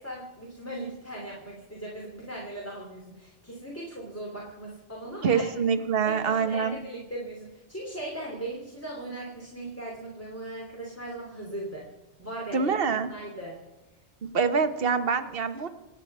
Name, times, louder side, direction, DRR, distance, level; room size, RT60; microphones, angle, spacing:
voice 1, 0.0-5.5 6.0-11.9 12.2-12.7 13.1-13.6, right 1 dB, 10° left, -3 dB, 3.0 m, -38 dB
voice 2, 5.2-6.8 12.5-13.1 14.3-15.7, right 6 dB, 55° right, 9 dB, 1.3 m, -25 dB
27.0 x 9.1 x 5.5 m, 1.1 s
omnidirectional pair, 1.2 m